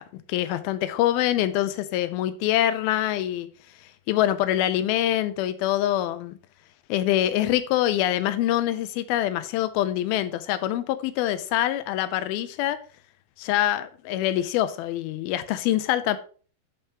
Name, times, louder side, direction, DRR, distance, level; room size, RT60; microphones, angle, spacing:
voice 1, 0.3-3.5 4.1-6.4 6.9-12.8 13.4-16.2, left 13 dB, 80° left, 2.5 m, -25 dB
11.5 x 6.6 x 3.0 m
omnidirectional pair, 4.4 m